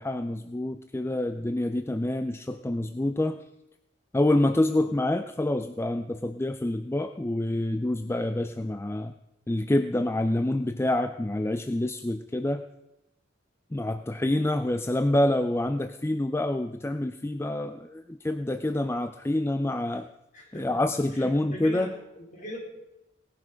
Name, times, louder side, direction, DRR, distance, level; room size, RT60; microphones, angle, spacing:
voice 1, 0.0-3.4 4.1-9.1 9.5-12.6 13.7-20.1 20.5-21.9, left 1 dB, 15° left, 9 dB, 0.4 m, -27 dB
voice 2, 20.3-22.6, equal, 40° left, -3 dB, 4.8 m, -41 dB
18.0 x 11.0 x 5.0 m, 0.91 s
head